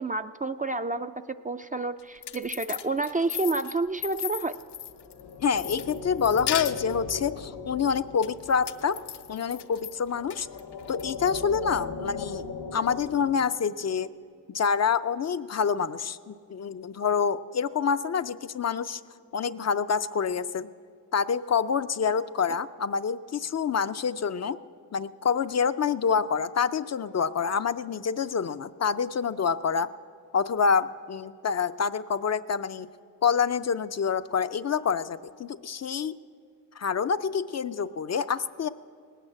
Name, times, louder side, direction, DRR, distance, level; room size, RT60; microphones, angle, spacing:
voice 1, 0.0-4.6, right 3 dB, 20° right, 9 dB, 0.4 m, -29 dB
sound 1, 2.0-5.2 5.6-7.1 8.2-9.9 10.3-11.0, left 10 dB, 70° left, 0.7 m, -36 dB
sound 2, 4.5-13.4, left 5 dB, 90° left, 1.8 m, -39 dB
voice 2, 5.4-9.0 9.3-10.5 10.9-12.5 12.7-14.1 14.5-19.0 19.3-20.7 21.1-24.6 24.9-29.9 30.3-32.9 33.2-36.2 36.8-38.7, left 6 dB, 40° left, 12 dB, 0.5 m, -27 dB
18.0 x 8.9 x 7.5 m, 2.2 s
cardioid pair, 65°, 42 cm